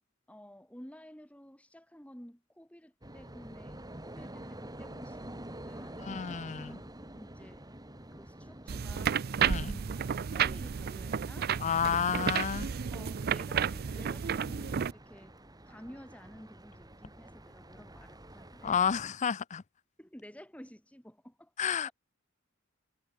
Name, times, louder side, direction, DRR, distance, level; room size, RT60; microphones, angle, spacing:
voice 1, 0.3-6.0 6.5-6.8 7.1-7.6 8.1-9.3 10.0-11.5 11.8-12.0 12.7-15.3 15.7-18.8 20.0-21.5 21.8-21.9, equal, 5° left, 3.5 m, -52 dB
sound 1, 3.0-19.1, right 1 dB, 20° right, 3.9 m, -49 dB
voice 2, 6.0-6.7 9.4-9.8 11.6-12.7 18.6-19.6 21.6-21.9, left 7 dB, 35° left, 0.5 m, -30 dB
sound 2, 8.7-14.9, right 7 dB, 45° right, 0.4 m, -32 dB
head